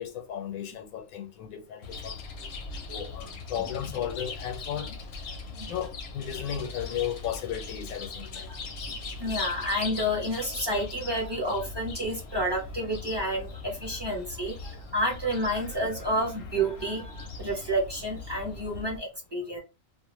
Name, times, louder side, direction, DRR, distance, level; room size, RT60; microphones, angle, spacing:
voice 1, 0.0-2.2 2.9-4.9 5.7-8.5, left 9 dB, 80° left, 1.0 m, -35 dB
Chirp tweet, 1.8-19.0, left 4 dB, 60° left, 0.7 m, -40 dB
voice 2, 8.9-19.6, equal, 25° right, 0.7 m, -30 dB
2.4 x 2.1 x 3.0 m
omnidirectional pair, 1.4 m